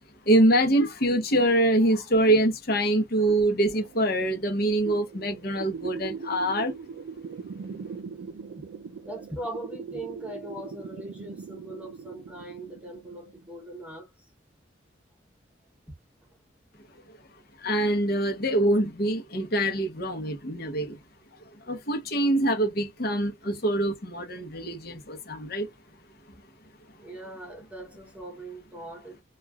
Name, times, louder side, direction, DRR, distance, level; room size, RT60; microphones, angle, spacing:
voice 1, 0.3-6.7 17.6-21.0 21.7-25.7, right 1 dB, 55° left, 0.7 m, -24 dB
sound 1, 3.3-13.5, right 5 dB, 75° right, 0.3 m, -41 dB
voice 2, 9.0-14.3 15.9-16.0 27.0-29.2, right 1 dB, 5° right, 0.7 m, -40 dB
3.0 x 2.3 x 2.2 m
head